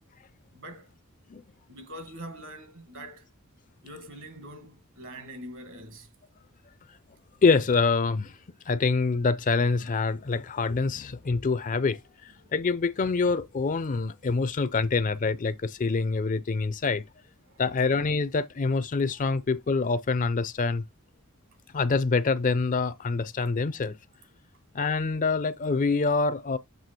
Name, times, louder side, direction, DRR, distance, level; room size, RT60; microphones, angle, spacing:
voice 1, 0.5-0.9 1.7-3.3 3.8-6.1 12.4-12.5 17.5-17.6, right 1 dB, 60° right, 1.7 m, -43 dB
voice 2, 7.4-8.3 8.7-12.0 12.5-17.0 17.6-20.8 21.7-23.9 24.7-26.6, left 4 dB, 35° left, 0.5 m, -25 dB
7.7 x 2.8 x 4.3 m
head